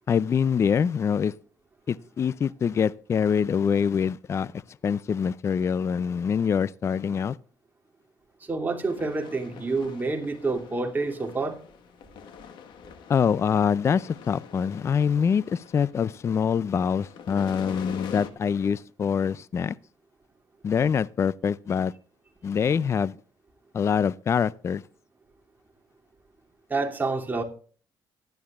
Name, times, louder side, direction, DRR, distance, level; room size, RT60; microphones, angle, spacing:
voice 1, 0.1-1.3 1.9-7.4 13.1-19.8 20.6-21.9 22.4-23.2 23.7-24.8, left 7 dB, 35° left, 0.4 m, -25 dB
voice 2, 8.4-11.6 26.7-27.4, right 3 dB, 20° right, 2.7 m, -28 dB
sound 1, 8.8-16.4 16.7-18.3, left 7 dB, 75° left, 1.4 m, -43 dB
15.5 x 11.5 x 2.4 m
cardioid pair, 100°, 8 cm